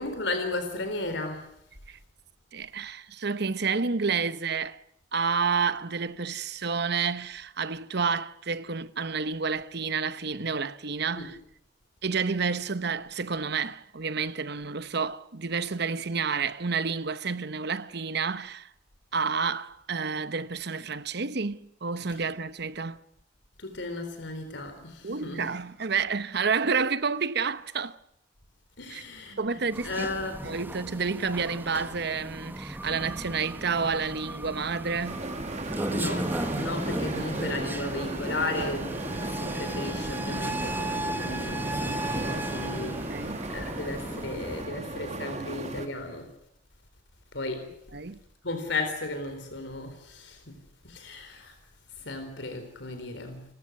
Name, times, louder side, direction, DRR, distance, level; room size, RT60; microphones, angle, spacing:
voice 1, 0.0-1.5 11.1-11.3 23.6-25.5 28.8-29.6 29.8-30.4 35.9-46.3 47.3-47.7 48.4-50.6 50.8-51.5 52.0-53.4, left 2 dB, 75° left, 4.2 m, -35 dB
voice 2, 2.5-4.8 5.1-11.4 12.0-18.7 19.1-23.0 25.0-28.0 28.9-29.0 29.4-30.1 30.4-35.2 43.1-43.4 47.9-48.2, right 5 dB, 65° right, 1.0 m, -30 dB
sound 1, 29.7-44.6, right 1 dB, 10° right, 1.4 m, -35 dB
sound 2, 35.0-45.9, right 2 dB, 40° right, 2.3 m, -36 dB
30.0 x 14.5 x 9.6 m
head